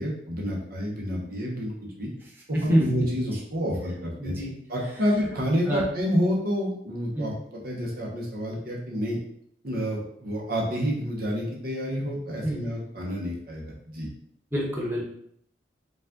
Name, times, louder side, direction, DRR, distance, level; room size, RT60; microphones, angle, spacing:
voice 1, 0.0-2.1 2.5-4.3 4.7-9.2 9.6-14.1, equal, 60° right, -2 dB, 1.0 m, -29 dB
voice 2, 4.2-4.5 5.7-5.8 7.1-7.3 12.4-12.6 14.5-15.0, equal, 10° right, -5 dB, 1.1 m, -25 dB
5.3 x 2.5 x 3.7 m, 0.69 s
head